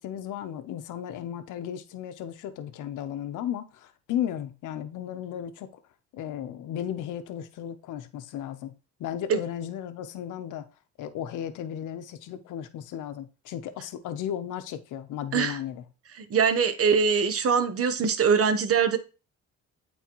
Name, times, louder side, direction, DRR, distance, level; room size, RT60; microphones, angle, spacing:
voice 1, 0.0-5.8 6.1-8.7 9.0-10.7 11.0-15.8, left 10 dB, 85° left, 0.7 m, -35 dB
voice 2, 16.2-19.0, right 6 dB, 50° right, 0.9 m, -23 dB
8.4 x 4.0 x 3.0 m
cardioid pair, 90°, 30 cm